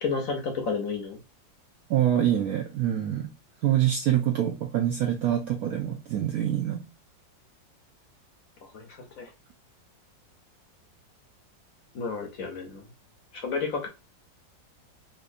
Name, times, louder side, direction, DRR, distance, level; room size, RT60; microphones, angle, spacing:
voice 1, 0.0-1.2 8.6-9.3 11.9-12.9 13.3-13.9, left 4 dB, 60° left, 1.0 m, -31 dB
voice 2, 1.9-3.3 3.6-6.9, right 11 dB, 75° right, 0.8 m, -25 dB
4.1 x 2.6 x 2.5 m
omnidirectional pair, 2.0 m